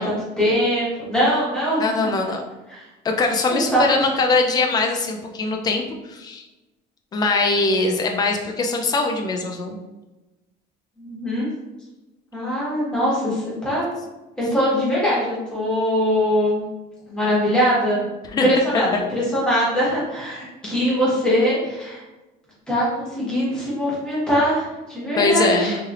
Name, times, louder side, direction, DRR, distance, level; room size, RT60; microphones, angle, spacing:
voice 1, 0.0-1.9 2.7-2.8 3.5-4.0 11.0-11.5 12.3-13.9 14.4-16.6 17.1-18.0 18.3-19.0 19.3-22.0 22.7-25.8, equal, 5° left, -8 dB, 1.3 m, -22 dB
voice 2, 1.8-2.4 3.0-5.8 6.1-6.4 7.1-9.8 18.3-18.5 18.7-18.8 20.6-20.7 25.2-25.7, left 3 dB, 20° left, 3 dB, 0.3 m, -21 dB
3.2 x 2.8 x 2.4 m, 1.1 s
cardioid pair, 160°, 18 cm